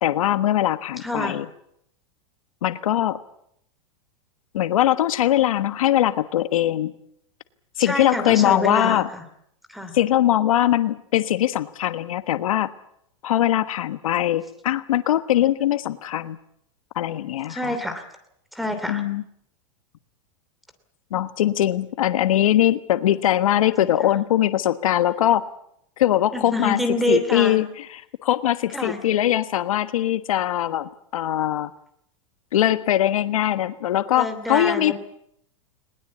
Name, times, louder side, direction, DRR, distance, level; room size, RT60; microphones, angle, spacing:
voice 1, 0.0-1.4 2.6-3.2 4.5-6.9 7.8-9.1 9.9-12.7 13.2-16.4 16.9-17.6 18.9-19.2 21.1-25.5 26.0-26.8 27.1-27.7 27.9-31.7 32.5-34.9, left 12 dB, 85° left, 12 dB, 1.3 m, -21 dB
voice 2, 1.0-1.4 7.8-9.2 9.7-9.9 17.5-18.0 18.5-19.0 23.6-23.7 26.3-27.6 28.7-29.0 34.1-34.9, left 1 dB, ahead, 9 dB, 2.8 m, -26 dB
21.0 x 20.0 x 8.5 m, 0.71 s
supercardioid pair, 145°, 17 cm